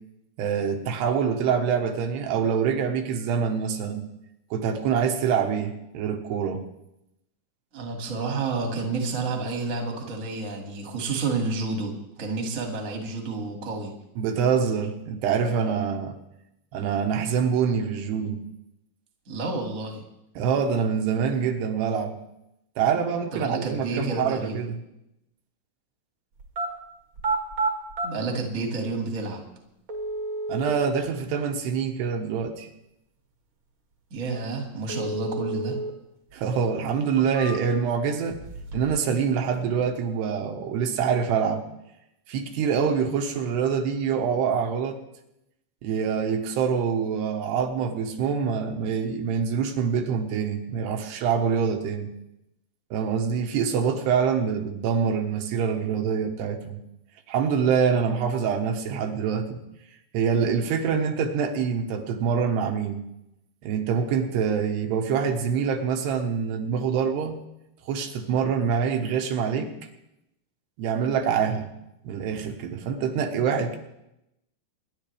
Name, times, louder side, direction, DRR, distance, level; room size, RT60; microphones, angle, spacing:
voice 1, 0.4-4.0 4.5-6.6 14.2-16.2 16.7-18.4 20.4-22.2 22.8-24.8 30.5-32.7 36.3-38.4 38.7-41.6 42.3-45.0 45.8-52.1 52.9-56.8 57.3-59.6 60.1-63.0 63.6-67.4 67.9-69.7 70.8-71.7 72.0-73.8, right 6 dB, 80° right, 3 dB, 3.4 m, -25 dB
voice 2, 7.7-13.9 19.3-20.0 23.3-24.6 28.0-29.4 34.1-35.8, right 3 dB, 25° right, 1 dB, 1.8 m, -30 dB
sound 1, 26.4-26.7 27.1-28.1 29.1-29.2 29.9-30.9 34.9-35.9 36.3-36.4 37.0-37.9 38.3-39.0 39.3-39.9, right 3 dB, 45° right, 1.7 m, -30 dB
25.5 x 11.0 x 3.4 m, 0.84 s
omnidirectional pair, 4.8 m